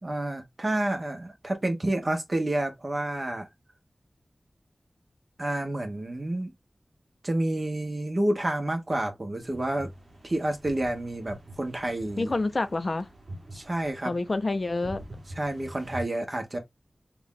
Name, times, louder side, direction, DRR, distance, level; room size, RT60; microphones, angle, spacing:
voice 1, 0.0-3.5 5.4-6.5 7.2-9.9 10.2-12.3 13.5-14.1 15.4-16.6, right 1 dB, 40° right, 1.2 m, -29 dB
sound 1, 9.4-16.0, right 1 dB, 60° right, 1.3 m, -45 dB
voice 2, 12.2-13.1 14.0-15.0, left 2 dB, 55° left, 0.7 m, -27 dB
3.5 x 2.5 x 3.7 m
wide cardioid pair, 70°, 0 cm